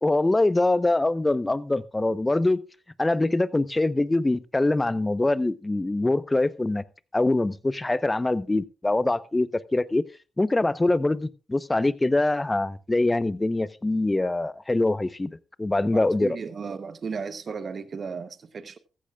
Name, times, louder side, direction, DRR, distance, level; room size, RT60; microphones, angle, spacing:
voice 1, 0.0-2.6 3.0-6.8 7.1-10.0 10.4-16.4, left 2 dB, 25° left, 0.9 m, -24 dB
voice 2, 15.8-18.8, right 5 dB, 55° right, 1.0 m, -35 dB
14.5 x 14.5 x 2.4 m
supercardioid pair, 45°, 0 cm